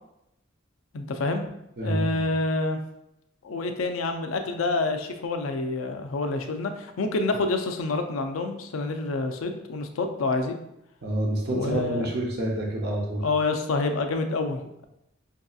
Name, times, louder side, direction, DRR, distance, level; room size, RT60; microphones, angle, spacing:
voice 1, 0.9-1.5 1.8-2.8 3.4-10.5 11.5-12.1 13.2-14.9, left 3 dB, 85° left, 6 dB, 0.4 m, -27 dB
voice 2, 1.8-2.2 11.0-13.2, right 1 dB, 50° right, -1 dB, 0.6 m, -28 dB
5.2 x 2.7 x 2.3 m, 0.83 s
head